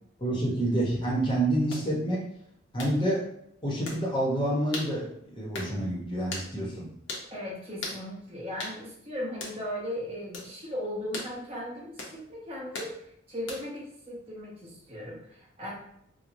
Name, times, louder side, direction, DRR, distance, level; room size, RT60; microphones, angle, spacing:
voice 1, 0.2-2.2 2.7-3.2 3.6-6.9, right 1 dB, 25° left, -4 dB, 0.9 m, -28 dB
sound 1, 1.7-1.9 2.8-3.0 3.9-4.0 4.7-4.9 5.5-5.7 6.3-6.5 7.1-7.3 7.8-8.0 8.6-8.8 9.4-9.6 10.3-10.5 11.1-11.3 12.0-12.2 12.7-12.9 13.5-13.8, left 2 dB, 70° left, 0.8 m, -37 dB
voice 2, 7.3-13.0 13.3-15.7, equal, 30° right, -6 dB, 1.2 m, -37 dB
4.5 x 2.2 x 2.6 m, 0.75 s
head